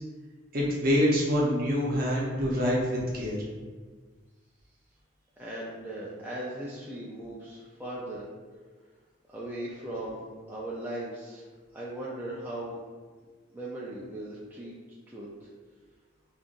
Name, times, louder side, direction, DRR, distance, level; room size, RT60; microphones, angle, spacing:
voice 1, 0.5-3.4, equal, 45° right, -4 dB, 0.8 m, -26 dB
voice 2, 5.4-8.3 9.3-11.4 11.7-12.8 13.5-14.7 15.1-15.5, right 1 dB, 10° right, -6 dB, 0.4 m, -38 dB
5.2 x 2.4 x 2.5 m, 1.5 s
head